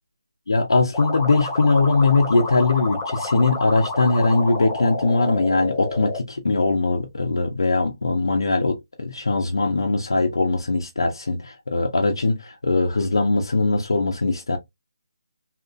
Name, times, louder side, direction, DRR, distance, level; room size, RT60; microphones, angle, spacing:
voice 1, 0.5-14.6, left 3 dB, 85° left, 0.6 m, -21 dB
sound 1, 0.9-6.2, left 2 dB, 10° left, 0.5 m, -30 dB
2.8 x 2.5 x 2.3 m
hypercardioid pair, 165°, 2 cm